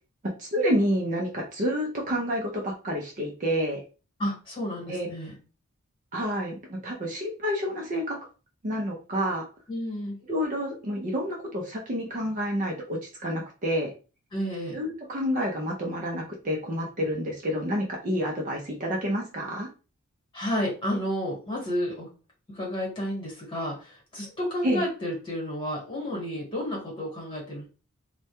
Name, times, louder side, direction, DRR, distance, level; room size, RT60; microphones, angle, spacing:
voice 1, 0.4-3.8 4.9-5.1 6.1-8.2 8.6-9.5 10.3-13.9 14.7-19.7 24.6-24.8, equal, 35° right, 0 dB, 0.4 m, -29 dB
voice 2, 4.2-5.3 9.7-10.2 14.3-14.8 20.3-22.1 22.5-27.7, equal, 25° left, -4 dB, 1.2 m, -31 dB
2.2 x 2.1 x 2.8 m, 0.35 s
head